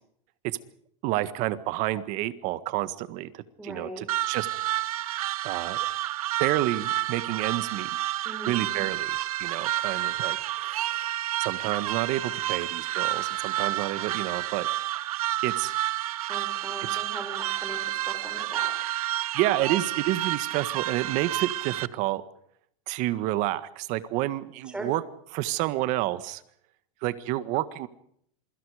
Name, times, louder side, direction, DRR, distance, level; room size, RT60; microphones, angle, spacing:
voice 1, 1.0-4.8 5.4-5.8 6.4-7.9 8.5-11.1 11.4-14.7 15.4-15.7 16.9-17.0 19.3-22.2 22.9-25.0 25.3-26.4 27.0-27.9, right 15 dB, 45° right, 13 dB, 1.7 m, -29 dB
voice 2, 3.6-4.1 8.2-8.8 16.3-18.7 24.6-24.9, right 1 dB, 5° right, 3 dB, 5.8 m, -40 dB
sound 1, 4.1-21.9, right 14 dB, 85° right, 1.1 m, -30 dB
27.5 x 24.0 x 5.1 m, 0.69 s
supercardioid pair, 150°, 18 cm